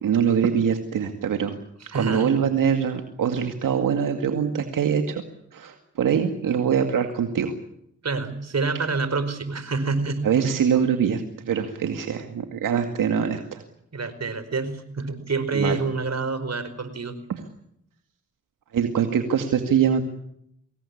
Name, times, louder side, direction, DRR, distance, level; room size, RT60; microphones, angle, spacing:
voice 1, 0.0-1.6 1.9-5.2 5.5-7.5 10.2-13.6 15.5-15.8 17.3-17.4 18.7-20.0, right 7 dB, 80° right, 5 dB, 2.2 m, -23 dB
voice 2, 1.8-2.3 8.0-10.3 13.9-17.2, right 4 dB, 55° right, 12 dB, 4.9 m, -27 dB
25.0 x 20.0 x 8.6 m, 0.72 s
supercardioid pair, 45°, 32 cm